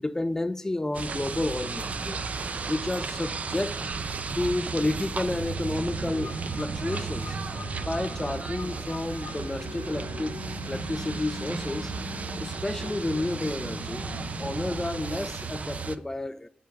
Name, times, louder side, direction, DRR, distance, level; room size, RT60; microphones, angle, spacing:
voice 1, 0.0-2.2 2.7-3.8 4.4-7.4 7.8-11.9 12.4-16.5, left 2 dB, 15° left, 0.4 m, -31 dB
sound 1, 0.9-16.0, right 4 dB, 45° right, 0.6 m, -34 dB
sound 2, 2.8-3.2 3.8-4.1 4.8-5.2 6.0-6.4 7.5-7.9 9.1-13.9, left 4 dB, 85° right, 2.3 m, -55 dB
sound 3, 4.9-15.2, left 5 dB, 80° left, 0.7 m, -43 dB
9.1 x 5.2 x 6.8 m
wide cardioid pair, 145°, 3 cm